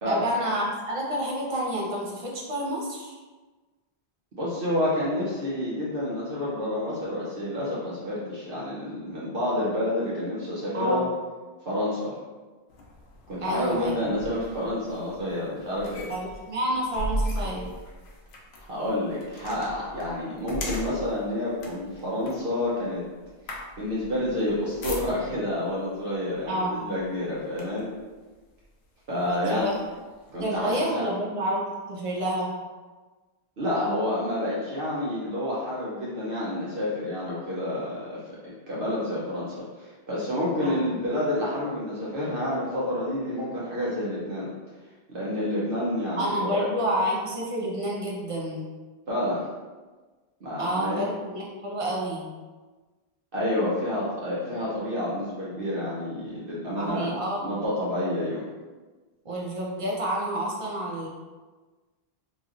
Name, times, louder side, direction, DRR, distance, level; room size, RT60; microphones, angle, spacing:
voice 1, 0.1-3.2 10.7-11.1 13.4-14.0 16.1-17.7 26.5-26.9 29.2-29.8 30.4-32.5 40.6-40.9 46.2-48.7 50.6-52.3 56.8-57.6 59.2-61.1, right 1 dB, 40° right, -3 dB, 0.5 m, -29 dB
voice 2, 4.3-11.1 11.6-12.2 13.3-16.1 18.6-23.0 23.8-27.9 29.1-29.7 30.3-31.1 33.6-38.2 38.7-44.5 45.1-46.6 49.1-49.4 50.4-51.0 53.3-57.1 57.4-58.4, left 1 dB, 60° right, -8 dB, 0.9 m, -29 dB
sound 1, 12.7-25.5 26.4-26.6 27.0-28.0 28.6-28.7 29.2-30.8, equal, 80° left, 0.9 m, -38 dB
3.0 x 2.9 x 2.4 m, 1.3 s
omnidirectional pair, 1.1 m